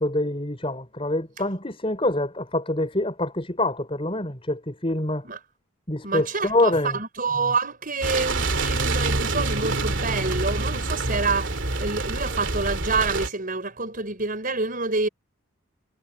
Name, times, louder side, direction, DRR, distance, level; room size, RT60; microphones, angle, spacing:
voice 1, 0.0-5.2 5.9-7.0, left 1 dB, 25° left, 4.8 m, -25 dB
voice 2, 6.0-15.1, right 4 dB, 45° right, 5.6 m, -27 dB
sound 1, 8.0-13.3, right 2 dB, 60° right, 2.9 m, -26 dB
head